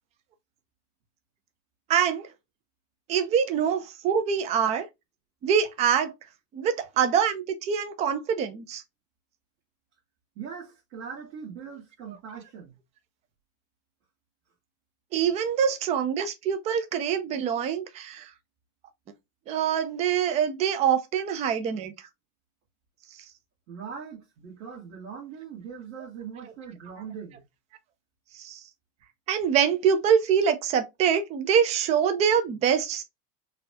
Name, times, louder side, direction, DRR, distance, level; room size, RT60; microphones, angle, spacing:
voice 1, 1.9-2.3 3.1-4.9 5.4-6.1 6.5-8.8 15.1-18.3 19.5-21.9 28.4-28.6 29.3-33.0, right 7 dB, 20° right, 0.3 m, -24 dB
voice 2, 10.3-12.7 23.7-27.4, right 7 dB, 50° right, 1.6 m, -41 dB
4.0 x 2.3 x 2.6 m
supercardioid pair, 155°, 38 cm